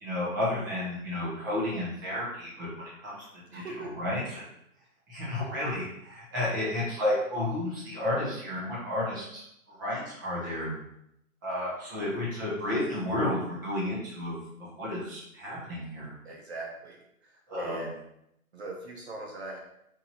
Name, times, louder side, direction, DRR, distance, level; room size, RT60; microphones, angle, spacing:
voice 1, 0.0-3.2 3.5-4.4 5.1-9.4 9.8-10.7 11.4-14.4 14.8-16.1 17.5-17.9, left 1 dB, 15° right, -7 dB, 0.9 m, -32 dB
voice 2, 3.5-3.9 16.2-17.3 17.6-18.0 18.5-19.6, right 2 dB, 50° right, 1 dB, 0.7 m, -40 dB
4.6 x 2.6 x 4.1 m, 0.78 s
hypercardioid pair, 165°, 43 cm